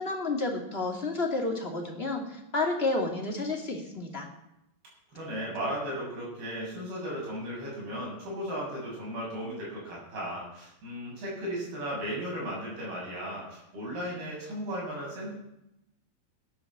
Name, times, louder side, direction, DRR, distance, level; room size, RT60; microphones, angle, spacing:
voice 1, 0.0-4.3, left 2 dB, 20° left, 1 dB, 1.7 m, -30 dB
voice 2, 5.1-15.4, equal, 80° right, -4 dB, 9.7 m, -36 dB
16.5 x 10.5 x 7.4 m, 0.84 s
omnidirectional pair, 4.4 m